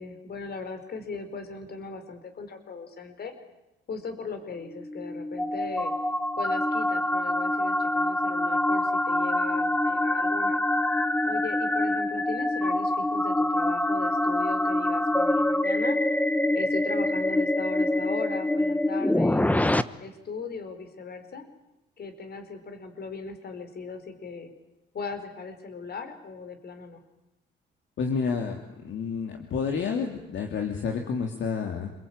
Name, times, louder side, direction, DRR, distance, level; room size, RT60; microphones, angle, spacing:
voice 1, 0.0-3.3 3.9-5.9 6.4-10.6 11.2-16.0 16.5-19.5 20.0-21.5 22.0-24.5 24.9-27.0, left 4 dB, 55° left, 7 dB, 5.1 m, -38 dB
sound 1, 4.7-19.8, left 1 dB, 5° left, 1.1 m, -25 dB
voice 2, 28.0-31.9, left 5 dB, 70° left, 3 dB, 3.2 m, -30 dB
28.0 x 22.5 x 9.0 m, 0.92 s
cardioid pair, 90°, 20 cm